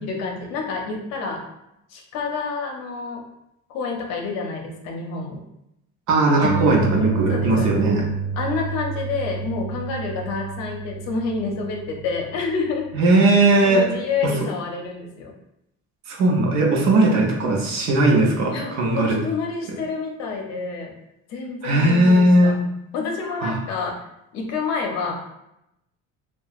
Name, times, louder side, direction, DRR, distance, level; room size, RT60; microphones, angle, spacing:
voice 1, 0.0-1.4 1.9-3.2 3.7-5.4 7.3-7.8 8.4-13.1 13.6-15.3 18.5-20.9 21.3-22.5 22.9-24.0 24.3-25.1, left 4 dB, 65° left, 1 dB, 0.6 m, -28 dB
voice 2, 6.1-8.0 12.9-13.8 16.1-19.2 21.6-22.6 23.4-23.6, right 2 dB, 70° right, -1 dB, 0.7 m, -18 dB
sound 1, 6.4-13.2, right 4 dB, 15° right, 1.2 m, -29 dB
2.8 x 2.3 x 2.4 m, 0.84 s
cardioid pair, 165°, 29 cm